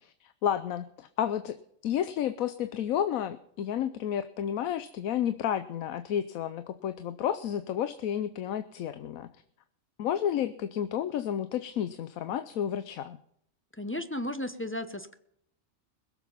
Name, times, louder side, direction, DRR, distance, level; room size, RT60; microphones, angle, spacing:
voice 1, 0.0-1.6 1.8-9.3 10.0-13.2, left 9 dB, 90° left, 12 dB, 1.1 m, -31 dB
voice 2, 13.8-15.2, left 1 dB, 15° left, 9 dB, 0.6 m, -34 dB
21.5 x 7.3 x 5.6 m, 0.70 s
omnidirectional pair, 1.4 m